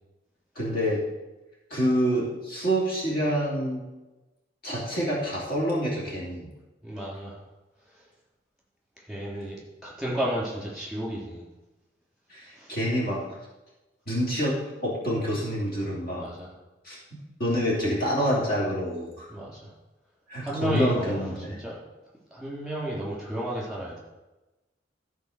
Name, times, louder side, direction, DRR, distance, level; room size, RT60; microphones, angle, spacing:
voice 1, 0.5-1.0 1.7-3.8 4.6-6.5 12.3-13.2 14.1-16.3 16.8-17.0 17.4-19.3 20.3-21.6, equal, 55° left, -4 dB, 3.0 m, -27 dB
voice 2, 6.8-7.4 9.1-11.4 12.5-12.7 16.2-16.5 19.3-19.7 20.4-21.8 22.3-24.0, equal, ahead, -6 dB, 3.7 m, -32 dB
14.0 x 4.8 x 6.6 m, 1.1 s
head